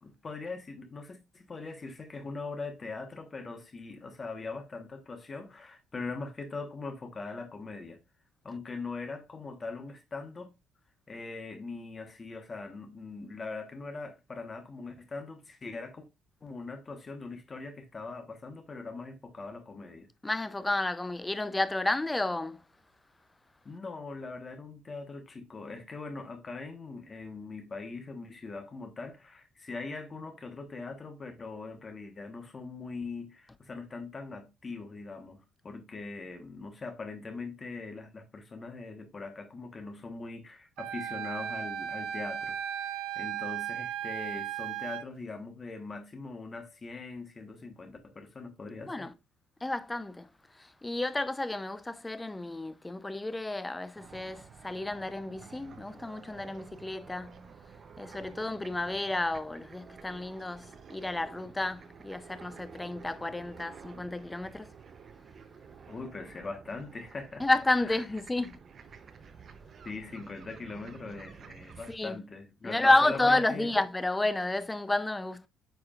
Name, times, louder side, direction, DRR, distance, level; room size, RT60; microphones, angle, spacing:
voice 1, 0.0-8.0 8.4-10.5 11.1-16.1 16.4-20.1 23.6-49.1 65.9-67.5 67.8-68.0 69.8-73.7, left 3 dB, 30° left, 1.2 m, -41 dB
voice 2, 20.2-22.6 48.9-49.1 49.6-50.3 50.8-57.3 58.0-64.7 67.4-68.6 71.9-72.2 72.6-75.5, left 2 dB, 10° left, 0.5 m, -30 dB
Wind instrument woodwind instrument, 40.8-45.1, right 9 dB, 75° right, 0.5 m, -36 dB
sound 1, 54.0-72.0, right 6 dB, 45° right, 0.7 m, -51 dB
8.8 x 4.8 x 2.4 m
cardioid pair, 115°, 0 cm